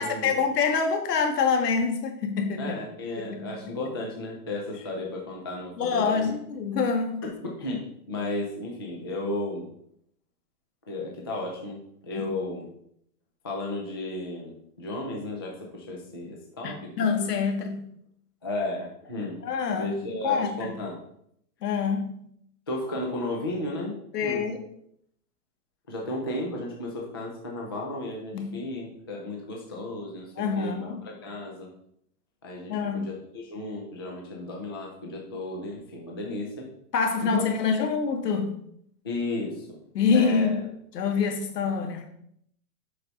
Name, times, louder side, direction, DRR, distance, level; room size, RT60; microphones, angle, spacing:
voice 1, 0.0-2.6 3.2-3.6 5.8-7.2 8.2-8.3 12.1-12.3 16.6-17.8 19.4-19.9 20.2-20.7 21.6-22.3 24.1-24.6 28.3-28.5 30.4-31.0 32.7-33.1 36.9-38.6 39.9-40.6 40.9-42.1, left 5 dB, 80° left, 4 dB, 1.9 m, -26 dB
voice 2, 2.6-6.3 7.2-7.3 7.6-7.8 8.1-9.7 10.9-12.6 13.4-17.1 18.4-19.4 19.7-21.0 22.7-24.5 25.9-30.3 30.6-31.7 32.4-36.7 37.2-37.4 39.0-39.8 40.1-40.6, left 2 dB, 15° left, -1 dB, 0.4 m, -34 dB
7.8 x 5.9 x 3.9 m, 0.70 s
supercardioid pair, 170°, 47 cm